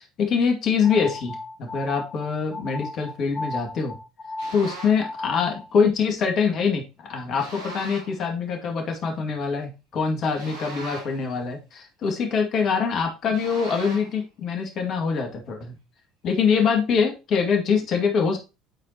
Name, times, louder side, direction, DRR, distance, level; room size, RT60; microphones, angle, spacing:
voice 1, 0.0-4.0 4.5-15.7 16.2-18.4, left 5 dB, 50° left, 3 dB, 2.1 m, -24 dB
sound 1, 0.8-5.7, left 2 dB, 30° left, 1.1 m, -35 dB
sound 2, 4.4-5.1 7.4-8.2 10.3-11.3 13.3-14.2, right 2 dB, 85° right, 5.1 m, -39 dB
11.0 x 4.4 x 2.9 m, 0.28 s
hypercardioid pair, 65°, 0 cm